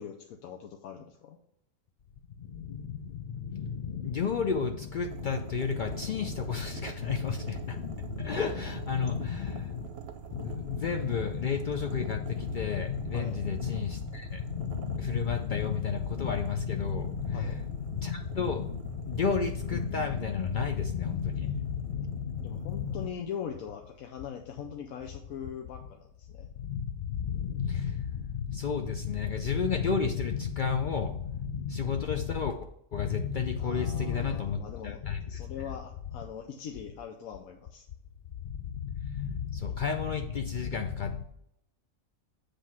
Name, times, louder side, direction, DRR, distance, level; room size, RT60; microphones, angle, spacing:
voice 1, 0.0-1.4 13.1-13.4 17.3-17.6 22.4-26.5 33.6-35.0 35.3-37.8, left 8 dB, 85° left, 3 dB, 1.1 m, -41 dB
voice 2, 2.4-9.9 10.3-23.1 26.6-32.6 32.9-35.7 38.4-41.2, left 6 dB, 70° left, 5 dB, 0.4 m, -32 dB
sound 1, 5.0-23.0, right 6 dB, 55° right, 0.8 m, -44 dB
7.6 x 3.4 x 6.1 m, 0.77 s
omnidirectional pair, 1.4 m